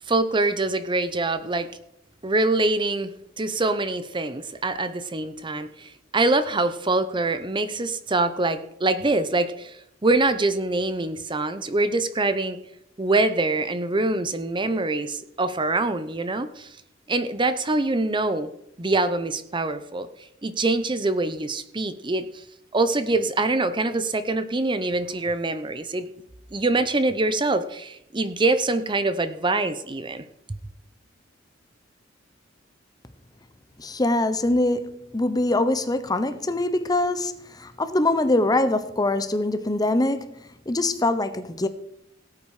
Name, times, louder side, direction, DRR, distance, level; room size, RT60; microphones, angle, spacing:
voice 1, 0.1-1.7 2.2-12.6 13.0-16.7 17.1-18.5 18.8-20.1 20.4-22.4 22.7-26.1 26.5-30.2, right 2 dB, 25° right, 0.8 m, -24 dB
voice 2, 33.8-40.4 40.7-41.7, left 2 dB, 20° left, 0.8 m, -23 dB
17.5 x 8.7 x 4.9 m
head